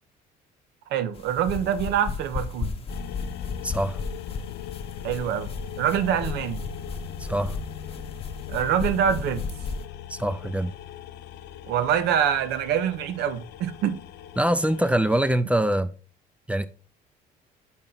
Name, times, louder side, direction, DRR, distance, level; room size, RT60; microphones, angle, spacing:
voice 1, 0.9-2.7 5.0-5.5 5.8-6.7 8.5-9.5 11.7-14.0, right 9 dB, 80° right, 0.7 m, -25 dB
sound 1, 1.1-9.8, left 4 dB, 35° left, 0.8 m, -35 dB
sound 2, 2.9-15.4, left 10 dB, 80° left, 0.5 m, -39 dB
voice 2, 3.6-4.0 7.2-7.6 10.1-10.7 14.4-15.9 16.5-16.7, right 1 dB, 5° right, 0.4 m, -24 dB
5.6 x 4.3 x 3.8 m
cardioid pair, 110°, 17 cm